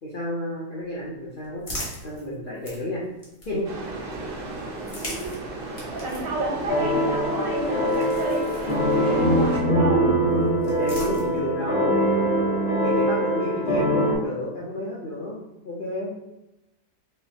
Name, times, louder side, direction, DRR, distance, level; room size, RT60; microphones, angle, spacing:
voice 1, 0.0-3.0 3.5-3.7 10.8-12.1 12.8-16.1, left 1 dB, 90° left, -6 dB, 0.4 m, -31 dB
sound 1, 0.8-3.9 4.7-9.3 10.2-11.7, left 1 dB, 30° left, 0.6 m, -41 dB
sound 2, 3.6-9.6, right 2 dB, 65° right, 0.5 m, -35 dB
voice 2, 5.0-5.3 6.0-10.1, right 2 dB, 85° right, 0 dB, 1.5 m, -31 dB
sound 3, 6.7-14.1, equal, 65° left, 1.7 m, -22 dB
4.8 x 2.0 x 2.8 m, 0.95 s
omnidirectional pair, 1.9 m